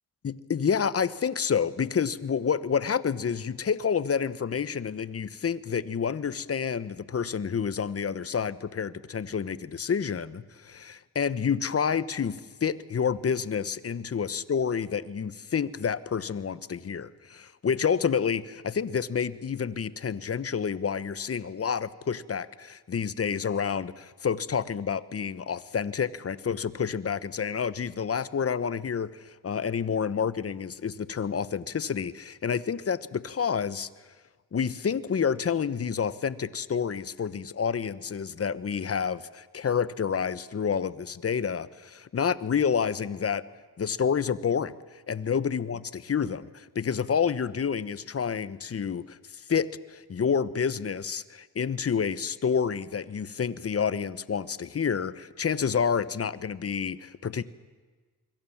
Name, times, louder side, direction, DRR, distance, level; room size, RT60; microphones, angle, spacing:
voice 1, 0.2-33.9 34.5-43.4 43.8-44.7 45.1-57.4, left 6 dB, 40° left, 16 dB, 1.2 m, -29 dB
26.0 x 23.0 x 7.3 m, 1.4 s
cardioid pair, 70°, 36 cm